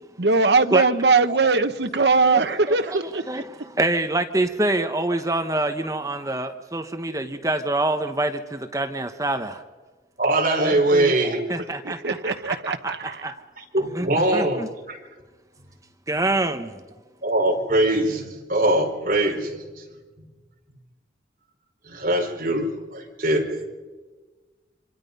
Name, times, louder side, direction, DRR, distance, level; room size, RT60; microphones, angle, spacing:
voice 1, 0.2-3.4 10.6-11.1 11.8-13.2, right 4 dB, 70° right, 1.1 m, -21 dB
voice 2, 2.3-9.6 11.5-13.4 13.9-14.7 16.1-16.8, right 2 dB, 20° right, 1.1 m, -26 dB
voice 3, 10.2-11.4 12.2-12.3 13.6-14.6 14.9-15.0 17.2-19.5 21.9-22.7 22.9-23.7, right 1 dB, 50° right, 5.0 m, -22 dB
27.0 x 25.5 x 5.5 m
head